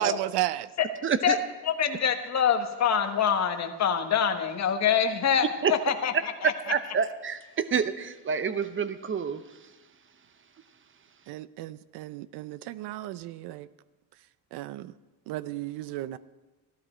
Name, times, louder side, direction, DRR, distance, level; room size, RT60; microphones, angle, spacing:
voice 1, 0.0-0.7 11.3-13.7 14.5-14.9 15.3-16.2, right 14 dB, 90° right, 17 dB, 0.6 m, -33 dB
voice 2, 1.0-1.4 5.6-5.7 6.4-9.4, right 6 dB, 30° right, 12 dB, 0.7 m, -28 dB
voice 3, 1.6-6.5, left 7 dB, 45° left, 6 dB, 1.2 m, -25 dB
14.0 x 12.0 x 4.4 m, 1.2 s
cardioid pair, 110°, 39 cm